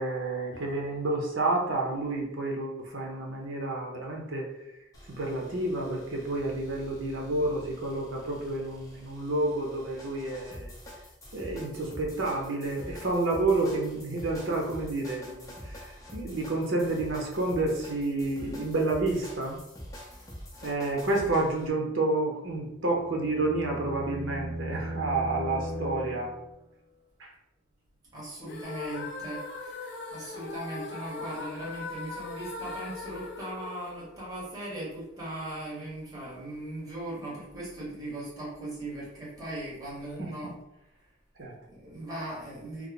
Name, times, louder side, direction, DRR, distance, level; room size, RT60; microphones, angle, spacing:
voice 1, 0.0-4.5 5.1-10.7 11.3-19.6 20.6-26.3 27.2-27.3 40.2-40.5 41.4-41.5, right 2 dB, 75° right, 0 dB, 0.8 m, -30 dB
sound 1, 4.9-21.7, equal, 15° left, 0.6 m, -46 dB
sound 2, 22.7-26.6, right 1 dB, 35° right, 1.4 m, -37 dB
voice 2, 28.1-40.5 41.7-42.9, right 1 dB, 20° right, -8 dB, 1.2 m, -39 dB
sound 3, 28.4-34.6, left 4 dB, 60° left, 0.4 m, -40 dB
3.1 x 2.0 x 3.8 m, 0.85 s
head